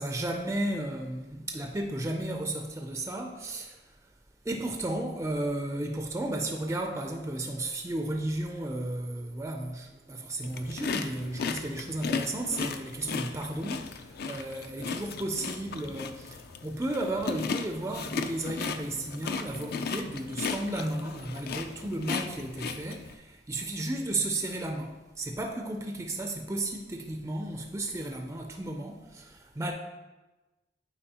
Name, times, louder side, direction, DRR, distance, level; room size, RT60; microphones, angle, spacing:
voice 1, 0.0-3.8 4.4-29.7, right 1 dB, 15° right, 0.4 m, -34 dB
sound 1, 10.4-23.1, left 5 dB, 55° left, 0.4 m, -36 dB
8.7 x 4.5 x 2.9 m
head